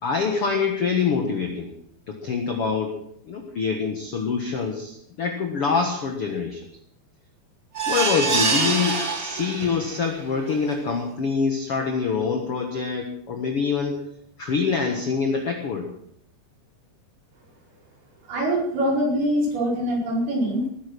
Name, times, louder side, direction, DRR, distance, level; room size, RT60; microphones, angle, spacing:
voice 1, 0.0-1.7 2.1-3.0 3.3-6.6 7.9-14.0 14.4-15.9, left 5 dB, 60° left, 4 dB, 1.5 m, -25 dB
sound 1, 7.7-10.0 10.5-10.6 10.9-11.0, right 4 dB, 50° right, 1.0 m, -25 dB
voice 2, 18.3-20.7, equal, 70° right, -3 dB, 7.0 m, -23 dB
18.5 x 10.5 x 6.2 m, 0.69 s
omnidirectional pair, 4.7 m